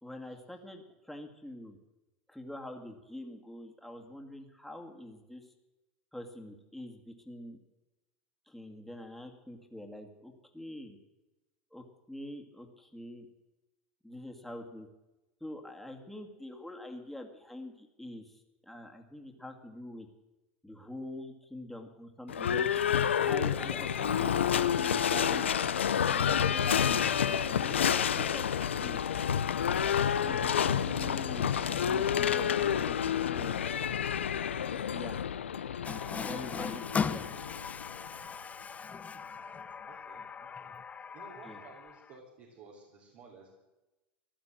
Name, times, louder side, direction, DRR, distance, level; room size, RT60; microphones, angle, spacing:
voice 1, 0.0-1.8 2.3-5.5 6.1-7.6 8.5-11.0 11.7-13.3 14.0-14.9 15.4-20.1 20.6-22.7 23.2-29.0 30.2-33.6 34.9-35.2 36.2-37.3 41.4-41.6, left 1 dB, 5° left, 2 dB, 2.4 m, -45 dB
Livestock farm animals working animals / Bell, 22.3-38.2, left 8 dB, 90° left, 0.7 m, -29 dB
Water tap faucet, 35.8-42.2, left 6 dB, 25° left, 0.7 m, -38 dB
voice 2, 39.5-40.7 41.1-43.6, right 4 dB, 55° right, -1 dB, 3.6 m, -54 dB
15.5 x 11.5 x 7.7 m, 1.0 s
hypercardioid pair, 90°, 6 cm